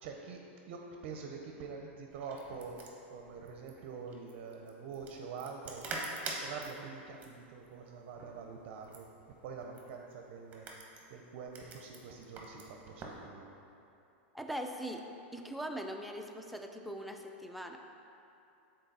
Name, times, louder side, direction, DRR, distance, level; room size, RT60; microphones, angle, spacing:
voice 1, 0.0-2.8 3.1-5.8 6.4-9.1 9.4-10.7 11.1-13.4, right 5 dB, 50° right, 2 dB, 0.5 m, -45 dB
sound 1, 2.1-13.2, right 3 dB, 25° right, 0.9 m, -47 dB
voice 2, 14.3-15.0 15.3-17.8, equal, ahead, 3 dB, 0.3 m, -41 dB
6.6 x 3.9 x 4.0 m, 2.7 s
supercardioid pair, 150°, 7 cm